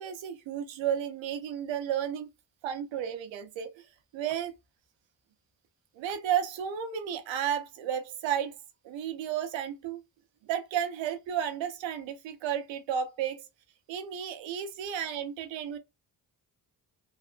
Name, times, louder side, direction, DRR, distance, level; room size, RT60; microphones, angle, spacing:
voice 1, 0.0-2.3 2.6-3.7 4.1-4.5 5.9-8.5 8.8-10.0 10.4-13.5 13.9-15.8, right 9 dB, 85° right, 0.7 m, -32 dB
3.0 x 2.1 x 2.4 m
cardioid pair, 60°, 44 cm